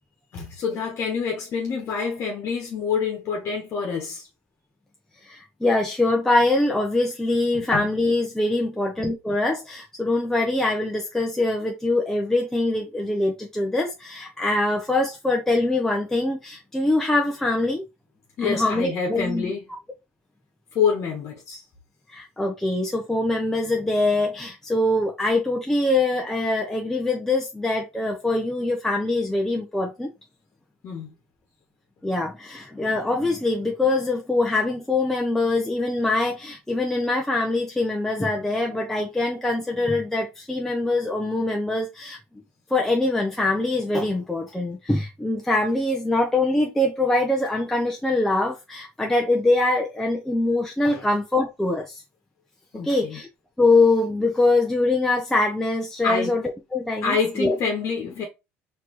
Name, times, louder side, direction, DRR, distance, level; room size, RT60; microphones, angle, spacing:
voice 1, 0.3-4.3 7.5-7.9 18.4-19.6 20.7-21.6 30.8-31.1 50.9-51.1 52.7-53.2 56.0-56.4 57.0-58.3, left 5 dB, 50° left, 1.2 m, -27 dB
voice 2, 5.2-17.8 18.4-19.5 22.1-30.1 32.0-42.2 42.7-52.0 52.8-53.3 53.6-57.6, left 2 dB, 5° left, 0.7 m, -23 dB
4.1 x 2.9 x 3.0 m
supercardioid pair, 95°, 6 cm